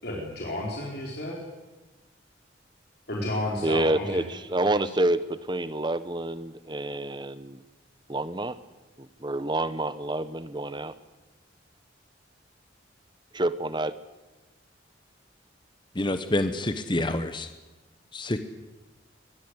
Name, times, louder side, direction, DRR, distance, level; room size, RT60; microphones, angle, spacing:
voice 1, 0.0-1.4 3.1-4.2 4.6-4.9, left 1 dB, 55° left, -2 dB, 4.6 m, -32 dB
voice 2, 3.6-7.6 8.1-8.6 9.2-10.9 13.3-14.0, right 1 dB, 25° right, 15 dB, 1.0 m, -28 dB
voice 3, 15.9-17.5 18.1-18.4, left 1 dB, 25° left, 9 dB, 1.0 m, -27 dB
23.5 x 19.5 x 8.1 m, 1.2 s
head